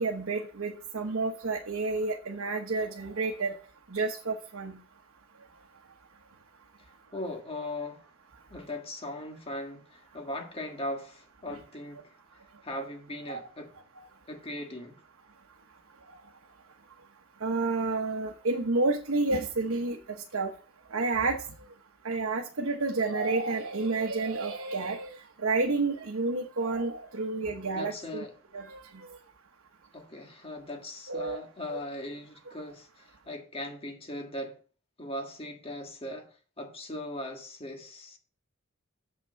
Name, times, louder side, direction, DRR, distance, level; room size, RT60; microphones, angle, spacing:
voice 1, 0.0-3.5 3.9-4.8 11.5-11.6 13.3-13.4 17.4-20.0 20.3-20.5 20.9-21.4 22.0-25.1 25.4-28.2 28.5-28.8 31.1-31.4 31.7-31.8, right 3 dB, 70° right, 1.0 m, -30 dB
voice 2, 6.8-8.0 8.5-12.0 12.6-13.7 14.3-15.0 27.7-28.3 29.9-34.6 35.0-36.3 36.6-38.2, left 1 dB, 25° left, 1.7 m, -39 dB
7.3 x 6.0 x 5.7 m
head